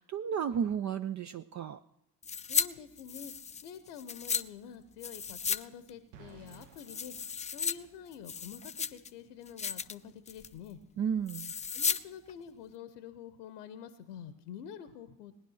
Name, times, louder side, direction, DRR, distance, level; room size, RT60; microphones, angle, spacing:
voice 1, 0.0-1.8 11.0-11.5, right 7 dB, 40° right, 9 dB, 0.6 m, -33 dB
sound 1, 2.2-2.7 3.0-4.4 5.0-5.6 5.9-6.0 6.5-7.7 8.1-9.1 9.5-9.9 10.3-10.6 11.3-12.0 12.3-12.4, left 6 dB, 15° left, 0.4 m, -34 dB
voice 2, 2.5-3.3 3.6-7.1 7.5-10.8 11.7-15.3, left 8 dB, 70° left, 12 dB, 0.9 m, -47 dB
sound 2, 6.1-8.3, right 7 dB, 60° right, 1.1 m, -56 dB
19.0 x 10.0 x 6.3 m, 0.86 s
figure-of-eight pair, 45°, 46 cm